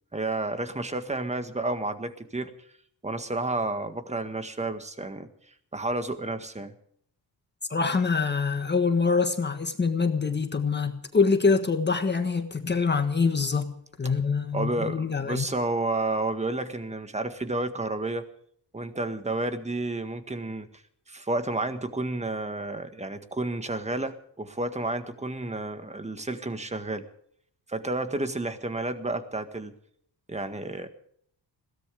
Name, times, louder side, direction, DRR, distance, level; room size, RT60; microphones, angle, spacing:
voice 1, 0.1-2.5 3.0-5.3 5.7-6.7 14.5-18.2 18.7-20.7 21.1-27.0 27.7-29.7 30.3-30.9, right 2 dB, 15° right, 1.7 m, -31 dB
voice 2, 7.7-15.5, left 4 dB, 25° left, 1.5 m, -25 dB
21.5 x 17.0 x 3.6 m
wide cardioid pair, 135°, 42 cm